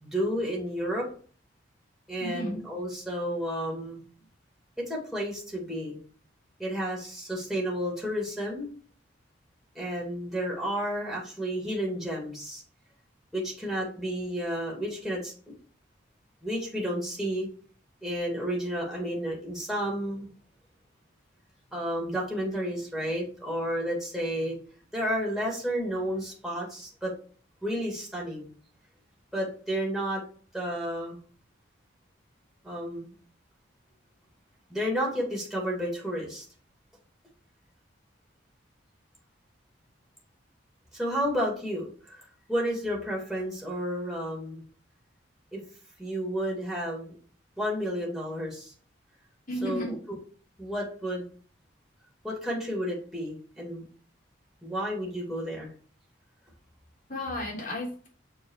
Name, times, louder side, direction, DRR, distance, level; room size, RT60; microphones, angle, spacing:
voice 1, 0.0-1.1 2.1-4.1 4.9-6.0 6.6-8.7 9.7-12.6 13.3-15.3 16.4-17.5 18.0-20.3 21.7-24.6 24.9-27.1 27.6-28.5 29.3-30.2 30.5-31.2 32.6-33.1 34.7-36.4 40.9-44.6 45.5-45.6 46.0-47.1 47.6-48.7 49.6-50.2 50.6-51.3 52.2-53.8 54.6-55.7, equal, ahead, -3 dB, 2.3 m, -31 dB
voice 2, 2.2-2.6 49.5-50.0 57.1-58.1, left 1 dB, 45° left, -3 dB, 3.4 m, -33 dB
6.9 x 4.3 x 4.7 m, 0.42 s
head